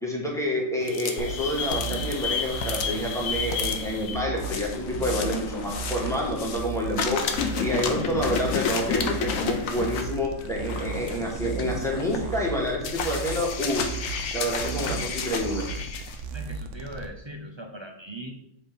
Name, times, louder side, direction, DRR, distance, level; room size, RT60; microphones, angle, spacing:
voice 1, 0.0-13.9 14.3-15.7, equal, ahead, -3 dB, 1.7 m, -28 dB
sound 1, 0.8-6.7 6.9-16.2, left 6 dB, 90° left, 1.2 m, -31 dB
sound 2, 1.2-17.1, right 4 dB, 70° right, 1.1 m, -35 dB
voice 2, 16.3-18.3, right 1 dB, 25° right, 2 dB, 0.7 m, -39 dB
7.4 x 4.0 x 5.1 m, 0.73 s
omnidirectional pair, 1.4 m